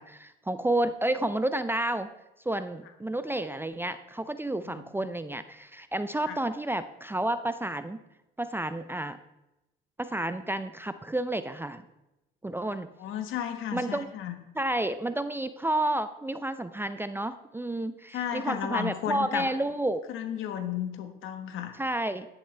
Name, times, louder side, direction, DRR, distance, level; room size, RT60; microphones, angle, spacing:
voice 1, 0.0-2.1 2.5-8.0 8.4-9.2 10.0-11.8 12.4-12.9 13.7-14.1 14.6-20.0 21.8-22.3, right 1 dB, 10° right, 12 dB, 0.5 m, -30 dB
voice 2, 13.0-14.3 18.1-19.5 20.1-21.8, left 9 dB, 70° left, 8 dB, 1.3 m, -33 dB
11.0 x 10.0 x 3.3 m, 0.93 s
cardioid pair, 95°, 21 cm